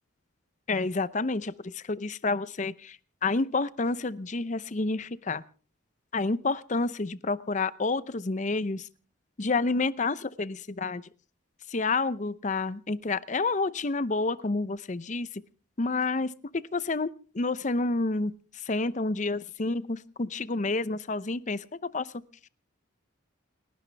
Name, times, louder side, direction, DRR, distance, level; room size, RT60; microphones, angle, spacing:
voice 1, 0.7-3.0 3.2-5.4 6.1-8.9 9.4-11.0 11.7-15.3 15.8-18.3 18.7-21.6 21.9-22.1, left 3 dB, 40° left, 17 dB, 0.6 m, -29 dB
29.5 x 11.5 x 3.4 m, 0.40 s
head